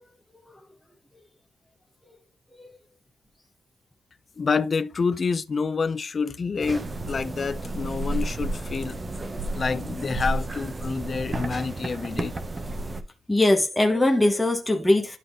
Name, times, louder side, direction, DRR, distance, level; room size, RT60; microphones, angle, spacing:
voice 1, 4.4-9.0 9.5-12.3, left 5 dB, 35° left, 0.6 m, -28 dB
sound 1, 6.6-13.0, right 2 dB, 25° right, 0.9 m, -31 dB
voice 2, 13.3-15.2, left 2 dB, 5° left, 1.3 m, -21 dB
11.5 x 3.9 x 3.7 m
wide cardioid pair, 140°, 0 cm